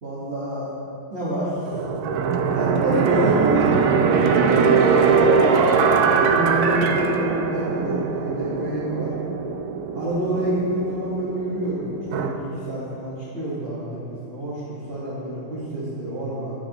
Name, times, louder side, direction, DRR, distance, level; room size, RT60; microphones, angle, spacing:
voice 1, 0.0-0.7 1.1-1.6 2.5-5.7 5.9-9.1 9.9-16.5, right 1 dB, 35° right, -9 dB, 1.6 m, -28 dB
sound 1, 1.7-12.3, right 5 dB, 70° right, 1.0 m, -21 dB
9.4 x 9.3 x 3.0 m, 2.8 s
omnidirectional pair, 1.8 m